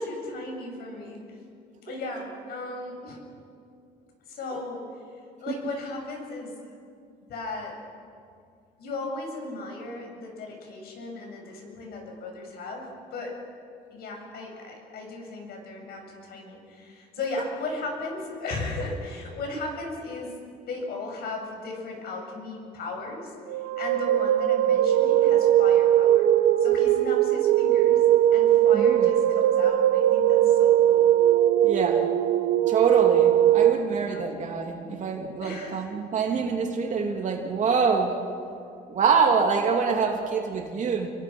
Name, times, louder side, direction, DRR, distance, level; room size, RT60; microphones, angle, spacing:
voice 1, 0.0-1.4 1.8-3.2 4.3-4.9 5.4-6.5 7.3-7.8 8.8-13.4 13.9-20.3 20.7-26.3 26.6-28.0 28.3-31.1 34.0-34.3 35.4-35.9, left 2 dB, 70° left, 2 dB, 7.5 m, -36 dB
sound 1, 23.5-33.7, right 11 dB, 85° right, 1.1 m, -20 dB
voice 2, 28.7-29.1 31.6-32.1 32.7-38.2 38.9-41.1, right 5 dB, 45° right, 2 dB, 2.9 m, -25 dB
29.0 x 23.5 x 6.3 m, 2.3 s
cardioid pair, 110°, 17 cm